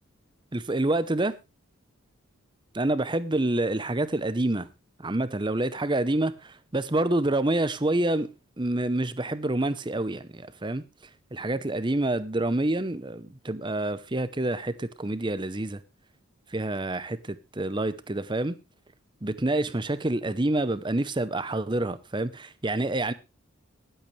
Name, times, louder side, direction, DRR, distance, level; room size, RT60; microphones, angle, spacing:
voice 1, 0.5-1.3 2.7-4.7 5.0-8.3 8.6-10.8 11.3-15.8 16.5-18.6 19.2-23.1, right 2 dB, 20° right, 0.8 m, -27 dB
21.0 x 8.1 x 3.2 m
head